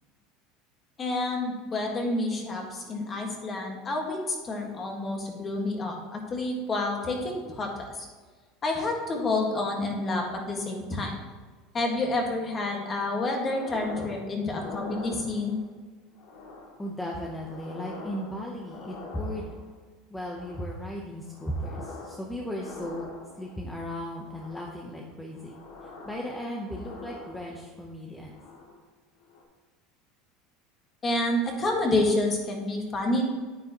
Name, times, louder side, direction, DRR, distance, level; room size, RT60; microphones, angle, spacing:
voice 1, 1.0-7.7 8.6-11.2 11.7-15.6 31.0-33.3, left 2 dB, 25° left, 1 dB, 1.7 m, -29 dB
sound 1, 13.4-14.2 14.5-15.7 16.2-16.8 17.2-19.7 20.2-20.8 21.2-22.2 22.5-23.6 24.2-24.8 25.3-27.8 28.2-28.8 29.2-29.4, left 3 dB, 65° left, 2.3 m, -44 dB
voice 2, 16.8-19.6 20.1-23.1 23.3-25.6 25.8-28.4, equal, 5° left, -1 dB, 0.9 m, -36 dB
9.4 x 9.2 x 3.0 m, 1.4 s
supercardioid pair, 150°, 0 cm